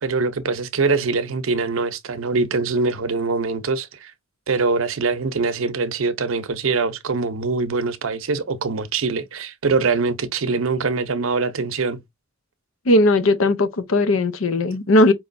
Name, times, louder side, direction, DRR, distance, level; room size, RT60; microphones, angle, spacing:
voice 1, 0.0-4.1 4.5-12.0, right 4 dB, 85° right, 0.7 m, -23 dB
voice 2, 12.9-15.1, left 1 dB, 85° left, 0.7 m, -17 dB
4.7 x 3.0 x 2.5 m
head